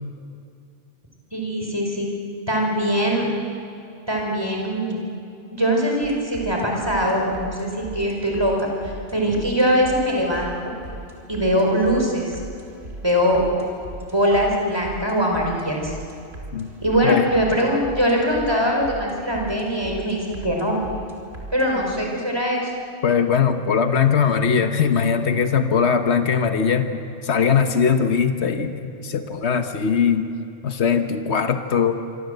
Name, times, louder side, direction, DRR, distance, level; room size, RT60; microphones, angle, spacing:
voice 1, 1.3-2.1 2.5-3.3 4.1-5.0 5.5-10.8 11.3-12.4 13.0-13.4 14.1-16.0 16.8-20.8 21.5-22.7, equal, 20° right, 0 dB, 5.0 m, -22 dB
sound 1, 6.0-21.7, right 1 dB, 70° right, 4.3 m, -39 dB
voice 2, 23.0-30.3 30.6-31.9, left 6 dB, 80° left, 7 dB, 1.5 m, -20 dB
27.0 x 25.5 x 8.1 m, 2.5 s
omnidirectional pair, 1.1 m